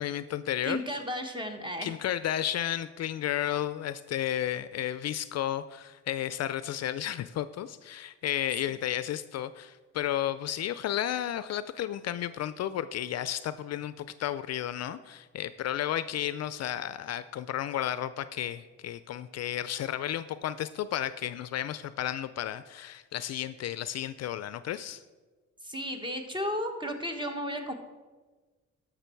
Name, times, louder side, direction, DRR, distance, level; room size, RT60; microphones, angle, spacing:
voice 1, 0.0-0.8 1.8-25.0, left 11 dB, 60° left, 14 dB, 0.4 m, -33 dB
voice 2, 0.6-1.9 25.6-27.7, equal, 15° right, 5 dB, 1.5 m, -34 dB
13.5 x 6.0 x 4.6 m, 1.3 s
cardioid pair, 90°, 30 cm